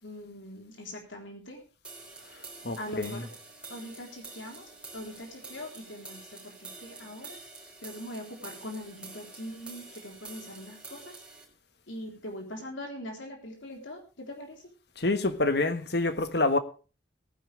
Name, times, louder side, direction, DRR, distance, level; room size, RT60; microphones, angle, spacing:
voice 1, 0.0-1.6 2.8-3.3 3.7-7.4 7.8-11.1 11.9-14.7, left 1 dB, 75° left, 3.7 m, -42 dB
sound 1, 1.8-11.4, right 3 dB, 5° right, 5.1 m, -47 dB
voice 2, 2.6-3.2 15.0-16.6, left 2 dB, 55° left, 1.4 m, -27 dB
18.5 x 10.5 x 3.4 m
head